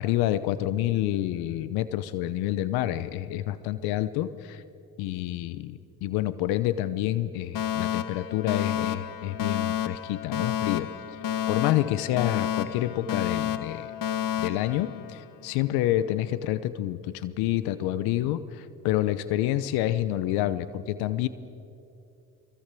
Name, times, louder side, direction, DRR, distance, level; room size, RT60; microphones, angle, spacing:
voice 1, 0.0-4.6 5.0-10.9 11.5-13.9 14.4-21.3, left 13 dB, 85° left, 15 dB, 0.9 m, -28 dB
Alarm, 7.5-15.6, left 10 dB, 60° left, 1.3 m, -30 dB
25.0 x 23.0 x 8.4 m, 2.6 s
supercardioid pair, 65°, 37 cm